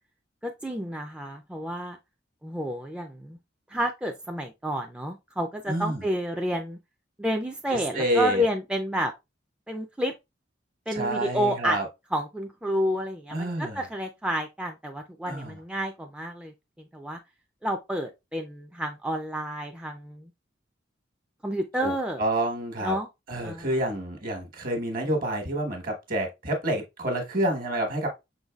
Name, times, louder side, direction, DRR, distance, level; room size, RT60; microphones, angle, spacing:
voice 1, 0.4-2.0 2.4-3.4 3.7-6.8 7.2-9.1 9.7-10.1 10.9-11.8 12.1-17.2 17.6-20.3 21.4-22.2 22.8-23.1 23.4-23.7, equal, 5° right, 0.3 m, -30 dB
voice 2, 5.7-6.0 7.7-8.4 10.9-11.9 13.3-13.8 15.3-15.6 21.8-21.9 22.2-22.9 23.3-28.1, right 1 dB, 50° right, 1.2 m, -28 dB
5.5 x 3.9 x 2.3 m
head